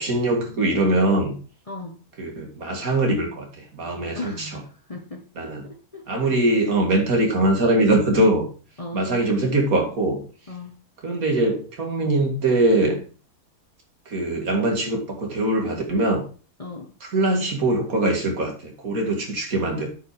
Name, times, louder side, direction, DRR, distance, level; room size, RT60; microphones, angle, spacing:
voice 1, 0.0-1.4 2.2-4.6 5.4-5.7 6.1-8.5 8.9-10.2 11.0-13.0 14.1-16.2 17.0-19.9, right 1 dB, 75° right, 1 dB, 2.7 m, -22 dB
voice 2, 1.7-2.0 4.2-5.2 5.6-6.0 8.8-9.0 10.5-10.8 16.6-16.9, left 2 dB, 30° left, 4 dB, 1.0 m, -36 dB
8.7 x 5.6 x 5.0 m, 0.37 s
omnidirectional pair, 1.5 m